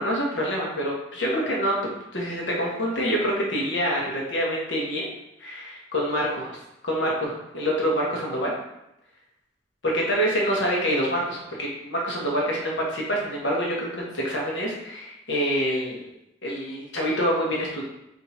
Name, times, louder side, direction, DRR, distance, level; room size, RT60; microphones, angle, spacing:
voice 1, 0.0-1.7 2.1-5.1 5.4-6.6 6.8-8.5 9.8-13.9 14.1-16.0 16.4-17.8, equal, 75° left, -3 dB, 1.2 m, -26 dB
3.5 x 2.8 x 4.2 m, 0.86 s
head